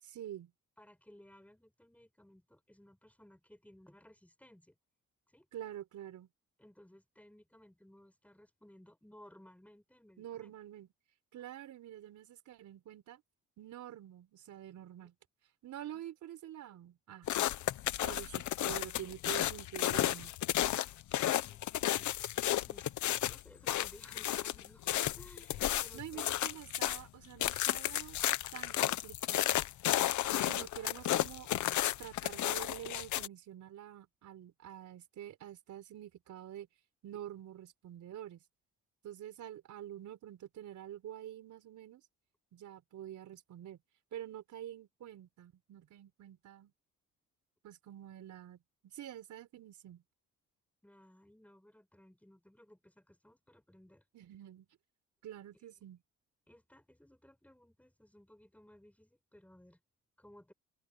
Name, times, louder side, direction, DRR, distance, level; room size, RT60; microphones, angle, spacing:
voice 1, 0.0-0.5 5.5-6.3 10.2-10.9 11.3-13.2 13.6-15.1 15.6-17.3 18.0-20.3 25.9-28.2 28.5-29.5 30.4-31.5 32.0-36.7 37.0-38.4 39.0-42.0 42.5-43.8 44.1-46.7 47.6-50.0 54.1-54.7 55.2-56.0, right 11 dB, 75° right, 4.4 m, -47 dB
voice 2, 0.8-4.8 5.3-5.5 6.6-10.5 15.9-16.0 22.7-26.5 50.8-54.1 56.5-59.8 60.2-60.5, left 1 dB, 5° left, 7.1 m, -60 dB
sound 1, 17.3-27.0 27.4-33.3, left 13 dB, 75° left, 1.0 m, -33 dB
open air
cardioid pair, 90°, 30 cm